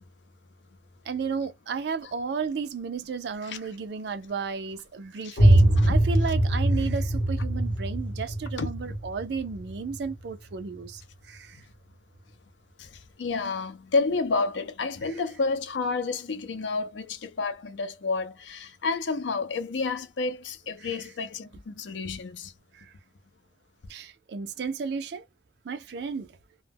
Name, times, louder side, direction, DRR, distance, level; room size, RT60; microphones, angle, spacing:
voice 1, 1.1-11.0 11.3-11.6 20.8-20.9 22.7-22.9 23.9-25.2 25.7-26.3, right 5 dB, 70° right, 0.4 m, -33 dB
sound 1, 5.4-11.0, right 1 dB, 60° left, 1.0 m, -23 dB
voice 2, 12.8-22.5, left 4 dB, 85° left, 0.5 m, -30 dB
2.2 x 2.0 x 3.3 m
head